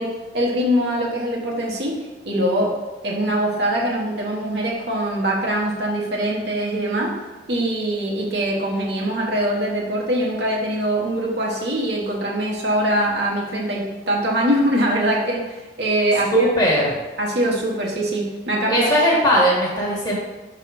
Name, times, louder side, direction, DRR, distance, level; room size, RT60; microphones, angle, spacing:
voice 1, 0.0-2.0 2.2-2.8 3.0-7.2 7.5-16.5 17.2-18.9, right 1 dB, 60° right, -2 dB, 1.2 m, -23 dB
voice 2, 16.3-16.9 18.7-20.2, equal, 20° left, -4 dB, 1.4 m, -18 dB
5.7 x 3.7 x 5.1 m, 1.1 s
head